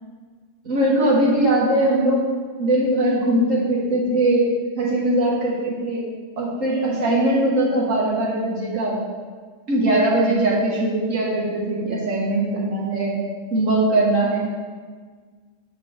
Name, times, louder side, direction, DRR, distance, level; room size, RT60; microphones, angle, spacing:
voice 1, 0.6-2.3 2.6-4.5 4.8-6.0 6.4-9.0 9.7-13.1 13.5-14.4, right 1 dB, 80° right, -5 dB, 1.8 m, -20 dB
6.9 x 5.8 x 3.3 m, 1.5 s
omnidirectional pair, 1.3 m